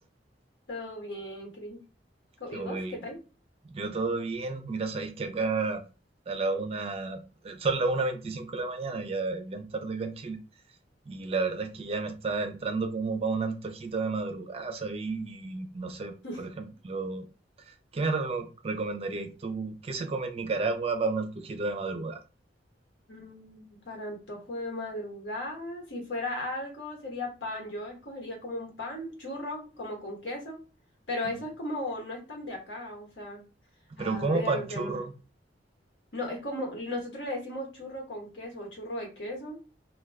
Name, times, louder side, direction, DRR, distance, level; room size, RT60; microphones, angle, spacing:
voice 1, 0.7-1.8 2.4-3.2 16.2-16.4 23.1-30.6 31.1-33.4 34.0-35.0 36.1-39.6, left 1 dB, 85° left, 1.1 m, -36 dB
voice 2, 2.5-3.0 3.7-5.8 6.3-10.4 11.1-17.3 17.9-22.2 31.3-31.4 34.0-35.1, right 3 dB, 35° right, 0.4 m, -31 dB
2.3 x 2.2 x 3.3 m
head